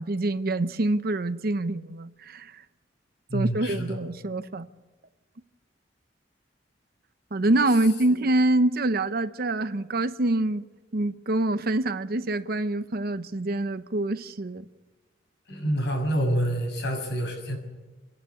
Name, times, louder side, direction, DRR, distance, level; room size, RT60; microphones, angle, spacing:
voice 1, 0.0-2.6 3.3-4.7 7.3-10.6 10.9-14.7, right 2 dB, 55° right, 0.8 m, -25 dB
voice 2, 3.3-4.0 8.1-8.2 15.5-17.6, right 1 dB, 65° left, 6.6 m, -27 dB
27.5 x 11.5 x 9.8 m
head